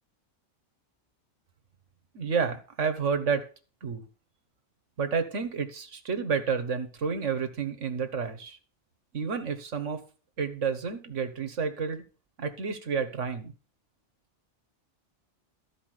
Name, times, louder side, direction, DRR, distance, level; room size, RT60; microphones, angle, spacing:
voice 1, 2.1-3.4 3.8-4.0 5.0-8.6 9.1-10.0 10.4-12.0 12.4-13.5, right 5 dB, 90° right, 9 dB, 1.7 m, -30 dB
14.0 x 5.0 x 6.5 m, 0.36 s
omnidirectional pair, 1.2 m